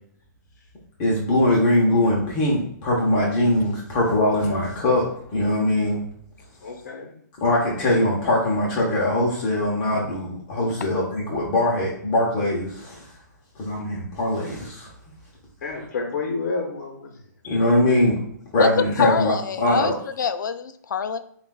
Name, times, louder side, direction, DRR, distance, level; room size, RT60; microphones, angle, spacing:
voice 1, 1.0-5.1 5.3-6.0 7.4-13.0 13.6-14.9 17.4-18.2 18.5-19.3 19.6-19.9, left 1 dB, 30° left, -4 dB, 0.9 m, -21 dB
voice 2, 6.6-7.1 15.6-17.1 17.4-17.6, left 4 dB, 55° left, 0 dB, 0.9 m, -30 dB
voice 3, 19.0-21.2, left 7 dB, 90° left, 10 dB, 0.4 m, -25 dB
7.0 x 2.4 x 2.3 m, 0.65 s
hypercardioid pair, 165°, 10 cm